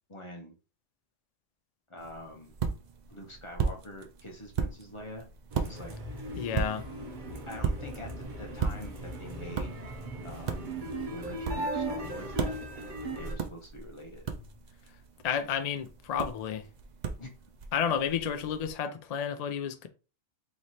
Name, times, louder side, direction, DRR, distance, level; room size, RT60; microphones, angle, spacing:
voice 1, 0.1-0.6 1.9-2.6 3.1-5.3 5.5-5.9 7.3-9.7 10.2-10.8 11.1-12.5 13.2-14.3 17.2-17.3, left 1 dB, 30° left, 0.8 m, -45 dB
sound 1, 2.0-18.7, right 5 dB, 70° right, 0.4 m, -37 dB
sound 2, 5.5-13.4, right 1 dB, 45° right, 0.8 m, -38 dB
voice 2, 6.4-6.8 15.2-16.7 17.7-19.9, left 8 dB, 70° left, 0.3 m, -31 dB
3.1 x 3.0 x 4.1 m
omnidirectional pair, 1.3 m